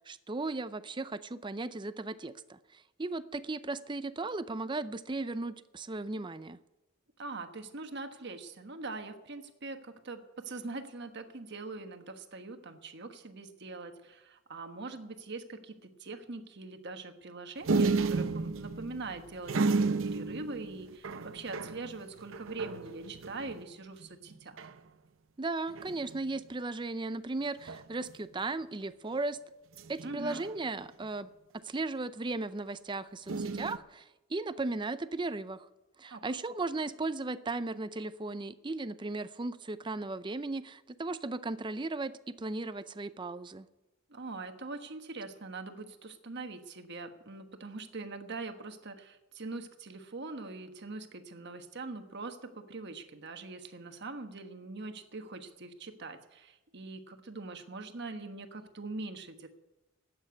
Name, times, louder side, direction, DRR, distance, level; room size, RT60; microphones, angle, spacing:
voice 1, 0.1-6.6 25.4-29.4 29.9-31.3 31.6-35.7 36.0-43.7, right 3 dB, 25° right, 14 dB, 0.5 m, -36 dB
voice 2, 7.2-24.6 30.0-30.4 36.1-36.2 44.1-59.5, right 3 dB, 55° right, 6 dB, 1.3 m, -43 dB
sound 1, 17.6-23.6 24.0-24.1 24.3-24.8 25.7-26.3 27.6-28.1 29.7-31.0 33.3-33.8, right 3 dB, 75° right, 0.7 m, -33 dB
13.0 x 8.8 x 9.5 m, 1.0 s
head